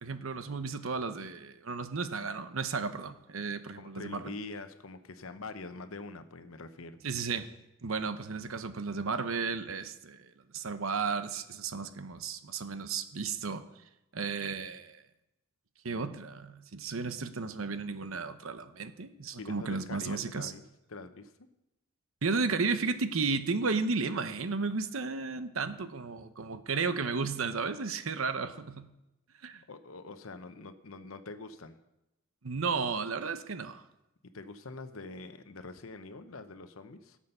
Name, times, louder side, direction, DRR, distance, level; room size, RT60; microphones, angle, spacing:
voice 1, 0.0-4.3 7.0-7.5 7.8-13.6 14.1-15.0 15.8-20.5 22.2-28.9 29.4-29.6 32.4-33.8, right 4 dB, 75° right, 10 dB, 0.9 m, -33 dB
voice 2, 3.8-7.0 19.4-20.6 20.9-21.3 29.7-31.8 34.3-37.2, left 3 dB, 85° left, 10 dB, 0.9 m, -44 dB
17.5 x 7.4 x 5.5 m, 0.92 s
head